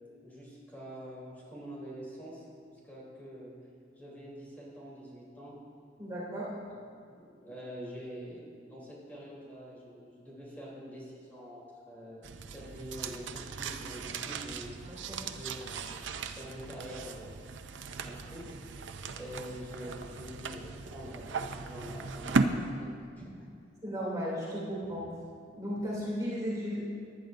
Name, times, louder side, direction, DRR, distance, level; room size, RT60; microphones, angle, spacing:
voice 1, 0.2-3.5 4.0-5.5 6.7-6.8 7.1-14.8 15.2-16.0 16.4-17.4 18.0-18.6 19.2-23.3, equal, 10° left, -6 dB, 3.3 m, -45 dB
voice 2, 6.0-6.5 14.8-15.2 23.8-25.1 25.5-26.9, equal, 20° right, -7 dB, 2.8 m, -35 dB
sound 1, 12.2-22.4, right 4 dB, 85° right, 0.6 m, -37 dB
19.0 x 10.5 x 2.6 m, 2.3 s
head